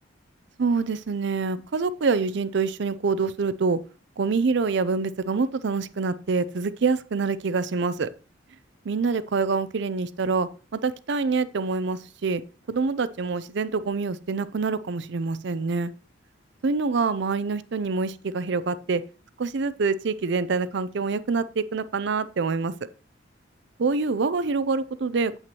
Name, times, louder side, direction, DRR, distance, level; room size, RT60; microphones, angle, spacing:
voice 1, 0.6-3.8 4.2-8.1 8.8-12.4 12.7-15.9 16.6-19.0 19.4-22.7 23.8-25.4, right 4 dB, 65° right, 0.5 m, -26 dB
8.8 x 7.8 x 2.9 m
head